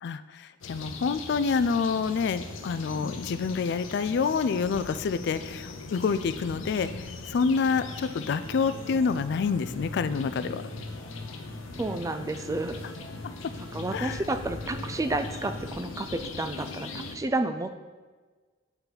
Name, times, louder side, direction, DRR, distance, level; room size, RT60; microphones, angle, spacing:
voice 1, 0.0-10.6 13.9-14.2, left 5 dB, 60° left, 14 dB, 0.3 m, -27 dB
sound 1, 0.6-17.2, left 3 dB, 85° left, 0.7 m, -41 dB
sound 2, 7.7-15.7, left 1 dB, 70° right, 2.6 m, -42 dB
voice 2, 11.8-12.8 13.6-17.8, right 2 dB, 15° right, 9 dB, 0.4 m, -31 dB
8.1 x 5.7 x 4.0 m, 1.4 s
head